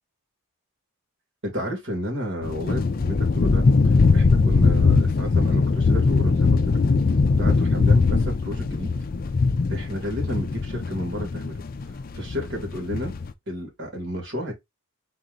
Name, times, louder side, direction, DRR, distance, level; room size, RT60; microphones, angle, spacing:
voice 1, 1.4-6.8 7.4-8.9 9.7-11.7 12.1-13.1 13.5-14.5, equal, 55° right, 2.2 m, -32 dB
sound 1, 2.4-13.3, left 4 dB, 40° left, 0.4 m, -21 dB
4.5 x 2.9 x 3.8 m
head